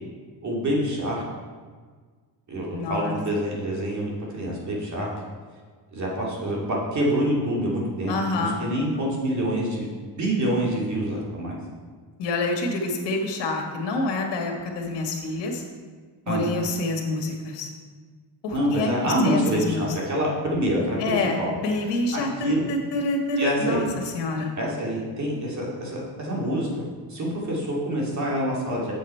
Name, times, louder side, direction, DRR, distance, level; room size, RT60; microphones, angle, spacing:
voice 1, 0.4-1.2 2.5-5.1 5.9-11.6 16.3-16.4 18.5-21.0 21.4-21.5 22.1-22.7 23.4-23.8 24.6-26.8 27.1-28.9, equal, 40° right, -3 dB, 2.7 m, -26 dB
voice 2, 2.7-3.1 8.1-8.6 12.2-15.6 16.3-17.7 18.4-20.0 21.0-23.9 24.1-24.5, left 2 dB, 70° left, 2 dB, 1.7 m, -27 dB
7.3 x 7.2 x 4.5 m, 1.5 s
cardioid pair, 95°, 44 cm